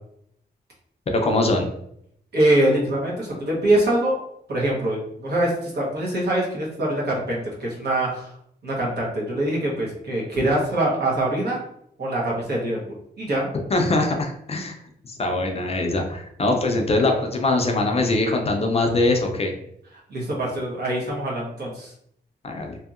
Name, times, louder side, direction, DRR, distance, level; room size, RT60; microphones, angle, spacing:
voice 1, 1.1-1.7 13.7-14.7 15.0-19.5 22.4-22.8, left 2 dB, 35° left, 3 dB, 0.4 m, -22 dB
voice 2, 2.3-4.2 4.5-8.3 8.6-11.6 12.0-12.8 13.2-13.5 20.1-21.9, right 1 dB, 65° right, -4 dB, 1.1 m, -23 dB
2.7 x 2.7 x 2.4 m, 0.72 s
wide cardioid pair, 130°, 18 cm